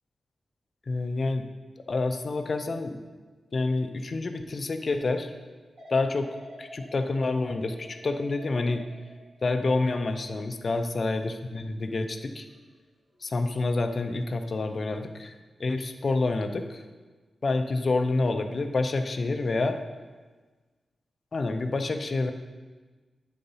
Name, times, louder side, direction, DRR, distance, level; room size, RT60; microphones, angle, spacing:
voice 1, 0.9-1.4 1.9-3.0 3.5-5.3 5.9-6.3 6.6-8.8 9.4-12.5 13.2-15.3 15.6-16.8 17.4-19.8 21.3-22.3, left 3 dB, 40° left, 7 dB, 0.5 m, -28 dB
sound 1, 5.8-12.7 13.1-13.6, equal, 60° right, 1.9 m, -50 dB
10.0 x 3.9 x 5.4 m, 1.3 s
wide cardioid pair, 170°, 0 cm